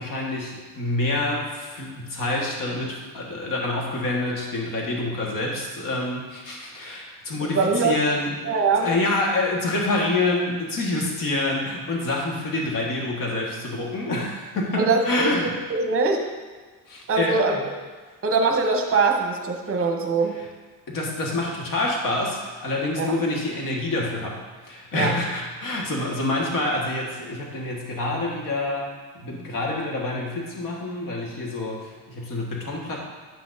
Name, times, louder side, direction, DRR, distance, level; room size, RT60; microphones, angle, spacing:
voice 1, 0.0-15.5 16.9-17.4 20.3-20.5 20.9-24.4 24.6-33.0, left 2 dB, 60° left, -2 dB, 1.5 m, -27 dB
voice 2, 7.5-8.0 8.4-8.9 14.8-15.3 15.7-16.2 17.1-17.6 18.2-20.4 23.0-23.1 24.9-25.1, right 4 dB, 35° right, 3 dB, 0.9 m, -22 dB
9.0 x 5.9 x 2.6 m, 1.4 s
cardioid pair, 135°, 38 cm